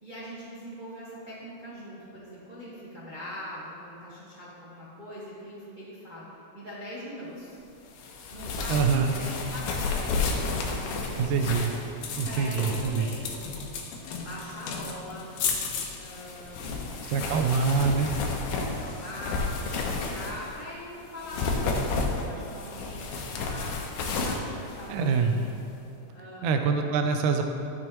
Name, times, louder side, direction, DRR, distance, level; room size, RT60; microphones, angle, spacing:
voice 1, 0.0-6.2 6.5-7.6 8.3-11.3 12.3-13.2 14.2-15.3 16.0-17.5 18.2-18.3 18.6-23.8 24.2-25.5 26.1-26.6, equal, 30° right, -9 dB, 0.8 m, -42 dB
sound 1, 8.0-20.6 21.1-25.4, left 4 dB, 90° left, 2.4 m, -32 dB
voice 2, 8.7-9.1 11.2-11.7 12.2-13.1 17.0-18.1 24.9-25.4 26.4-27.4, right 5 dB, 85° right, 5 dB, 2.2 m, -25 dB
12.0 x 6.8 x 3.0 m, 2.7 s
omnidirectional pair, 3.6 m